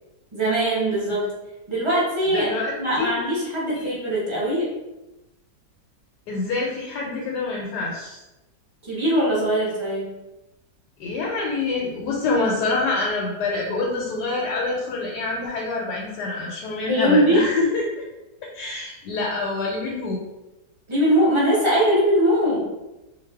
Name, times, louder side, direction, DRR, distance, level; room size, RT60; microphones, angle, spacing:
voice 1, 0.3-1.3 1.7-4.7 8.8-10.1 16.8-17.5 20.9-22.7, equal, 30° right, -7 dB, 0.5 m, -21 dB
voice 2, 2.3-3.1 3.7-3.9 6.3-8.2 11.0-17.9 18.5-20.2, left 3 dB, 90° left, -3 dB, 1.2 m, -26 dB
2.5 x 2.3 x 3.3 m, 1.0 s
omnidirectional pair, 1.7 m